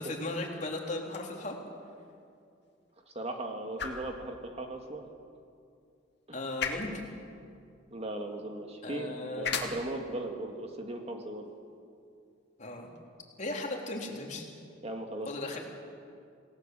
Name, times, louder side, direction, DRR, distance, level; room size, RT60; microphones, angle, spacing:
voice 1, 0.0-1.5 6.3-7.0 8.8-9.6 12.6-12.9 13.4-14.4 15.3-15.6, left 2 dB, 40° left, 0 dB, 3.5 m, -36 dB
sound 1, 1.0-13.0, left 6 dB, 60° left, 2.5 m, -43 dB
voice 2, 3.1-5.1 7.9-11.4 14.8-15.3, right 1 dB, 35° right, 3 dB, 2.0 m, -38 dB
28.0 x 18.0 x 7.6 m, 2.4 s
head